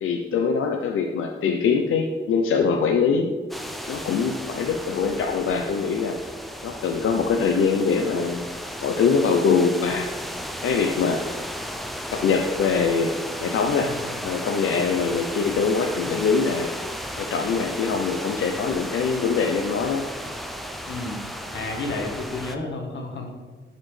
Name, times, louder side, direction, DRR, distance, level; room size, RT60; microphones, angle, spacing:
voice 1, 0.0-3.3 3.9-6.2 6.6-8.4 8.8-10.1 10.6-11.2 12.1-13.1 13.4-13.9 14.2-16.7 17.2-20.0, left 5 dB, 90° left, 3 dB, 0.5 m, -23 dB
sound 1, 3.5-22.6, equal, ahead, 0.4 m, -34 dB
voice 2, 20.9-21.2 21.5-23.3, left 2 dB, 65° left, 1 dB, 1.2 m, -31 dB
8.7 x 4.2 x 3.2 m, 1.4 s
wide cardioid pair, 155°, 21 cm